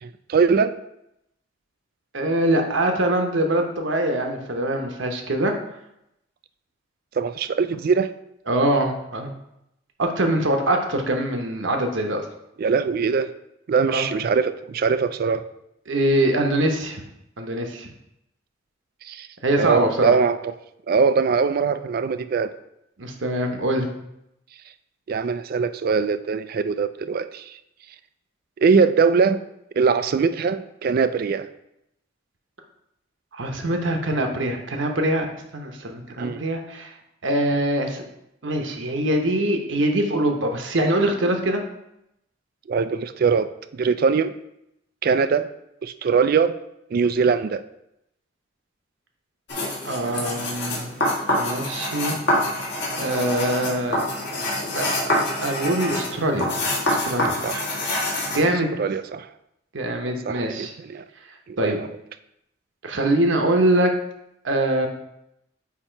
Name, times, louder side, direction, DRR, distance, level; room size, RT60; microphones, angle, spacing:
voice 1, 0.0-0.8 7.2-8.1 12.6-13.3 13.7-15.5 19.0-19.3 19.6-20.5 20.9-22.5 25.1-27.5 28.6-29.4 29.8-31.5 36.2-36.4 42.7-44.3 45.0-45.5 45.8-46.6 46.9-47.6 57.4-57.6 58.8-59.3 60.3-61.0 61.5-61.9, right 5 dB, 50° right, 12 dB, 0.3 m, -22 dB
voice 2, 2.1-5.5 8.5-9.3 10.0-12.2 13.9-14.1 15.9-17.0 17.4-17.9 19.4-20.2 23.0-23.9 33.3-36.9 37.2-38.0 38.4-41.6 49.8-50.9 51.3-52.1 53.0-54.1 54.7-56.5 56.9-57.4 58.3-58.7 59.7-60.7 61.6-61.8 62.8-63.9 64.4-64.9, right 1 dB, 65° right, 4 dB, 0.9 m, -23 dB
sound 1, 49.5-58.4, left 1 dB, 60° left, 1.9 m, -26 dB
8.4 x 2.9 x 4.5 m, 0.82 s
head